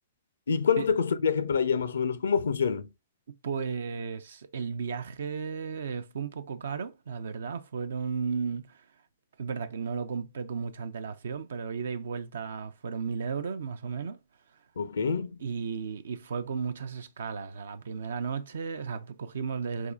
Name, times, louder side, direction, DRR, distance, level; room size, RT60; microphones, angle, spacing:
voice 1, 0.5-2.9 14.8-15.4, left 6 dB, 75° left, 0.5 m, -26 dB
voice 2, 3.4-8.8 9.4-14.2 15.4-19.9, right 6 dB, 70° right, 0.5 m, -34 dB
4.2 x 3.6 x 2.3 m
hypercardioid pair, 120°, 0 cm